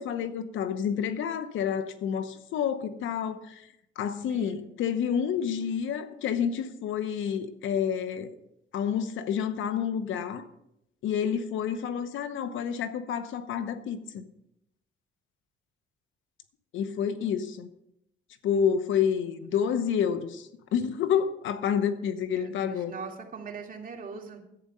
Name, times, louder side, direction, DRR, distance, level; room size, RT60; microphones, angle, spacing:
voice 1, 0.0-3.7 4.0-8.3 8.7-10.4 11.0-14.2 16.7-17.7 18.4-22.9, left 8 dB, 80° left, 1.0 m, -29 dB
voice 2, 4.2-4.6 5.1-5.2 19.5-19.6 22.3-24.4, right 5 dB, 45° right, 2.4 m, -42 dB
11.0 x 8.6 x 5.5 m
cardioid pair, 90°, 20 cm